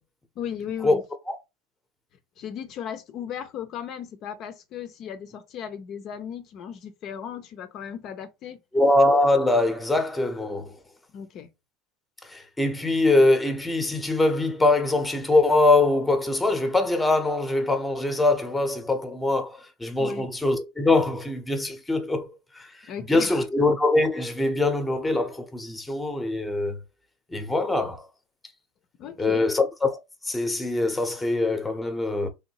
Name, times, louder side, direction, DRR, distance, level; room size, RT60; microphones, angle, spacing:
voice 1, 0.4-1.0 2.4-8.6 11.1-11.5 20.0-20.3 22.9-23.5 29.0-29.5, left 8 dB, 45° left, 0.5 m, -36 dB
voice 2, 8.7-10.7 12.3-22.3 22.6-22.7 23.1-26.8 27.3-28.1 29.2-30.0 30.2-32.3, left 2 dB, 10° left, 0.7 m, -23 dB
3.5 x 2.6 x 2.9 m
supercardioid pair, 120°, 0 cm